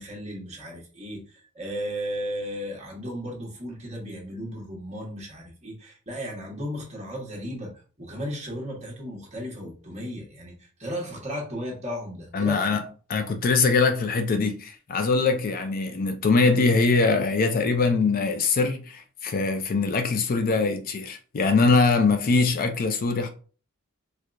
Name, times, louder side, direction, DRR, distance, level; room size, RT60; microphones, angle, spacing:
voice 1, 0.0-12.8, equal, 30° right, 1.2 m, -35 dB
voice 2, 12.3-12.8 13.1-23.3, left 4 dB, 40° left, 0.4 m, -22 dB
4.5 x 2.3 x 2.5 m
head